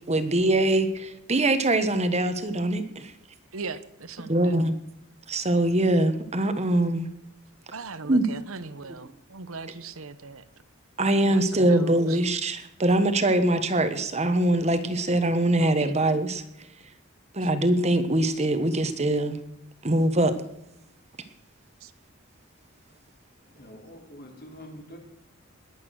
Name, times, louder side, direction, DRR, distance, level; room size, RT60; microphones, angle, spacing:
voice 1, 0.1-3.1 4.3-4.8 5.3-7.1 8.1-8.2 11.0-16.4 17.3-19.4 19.8-20.4, right 1 dB, 30° right, 10 dB, 1.3 m, -23 dB
voice 2, 3.5-4.6 7.7-10.4 11.2-12.2 15.5-16.0 21.8-21.9, right 4 dB, 90° right, 13 dB, 1.0 m, -39 dB
voice 3, 23.5-25.0, equal, 50° left, 3 dB, 3.2 m, -45 dB
20.5 x 8.6 x 6.4 m, 0.82 s
head